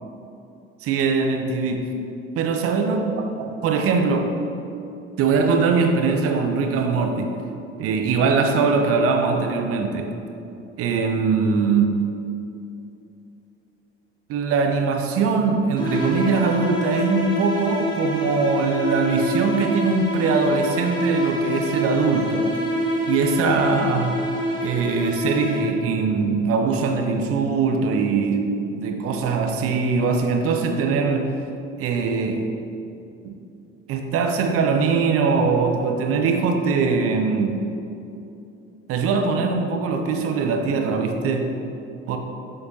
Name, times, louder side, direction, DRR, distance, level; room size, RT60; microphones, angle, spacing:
voice 1, 0.8-2.0 2.4-4.3 5.2-7.3 7.8-10.2 10.8-12.0 14.3-22.5 23.1-24.2 24.6-31.4 31.8-32.5 33.2-33.4 33.9-37.6 38.9-41.6 42.1-42.2, right 4 dB, 45° right, 5 dB, 0.8 m, -22 dB
sound 1, 15.8-26.0, equal, 15° left, 1.2 m, -26 dB
8.7 x 6.6 x 2.8 m, 2.8 s
figure-of-eight pair, 60°, 33 cm